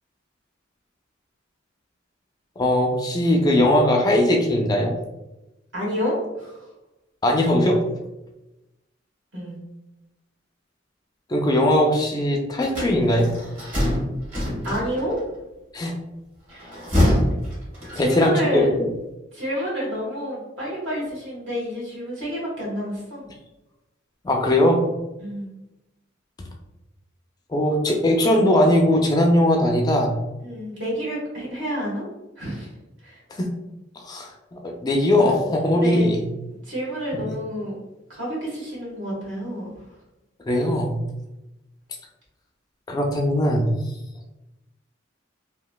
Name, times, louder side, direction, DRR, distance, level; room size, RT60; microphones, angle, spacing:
voice 1, 2.6-5.0 7.2-7.8 11.3-13.3 15.7-15.9 18.0-18.9 24.2-24.9 27.5-30.2 33.3-33.5 34.0-36.2 37.1-37.3 40.5-41.0 42.9-43.7, left 1 dB, 20° left, 1 dB, 0.3 m, -20 dB
voice 2, 5.7-6.6 9.3-9.6 14.6-15.2 16.5-16.8 17.9-18.7 19.3-23.3 25.2-25.5 30.4-32.1 32.4-32.7 33.0-33.2 35.7-36.1 36.6-37.8 38.1-39.7, equal, 75° right, -5 dB, 1.4 m, -29 dB
sound 1, 12.6-15.2 16.5-18.3, left 1 dB, 40° right, 1.2 m, -24 dB
3.0 x 2.7 x 2.2 m, 0.98 s
head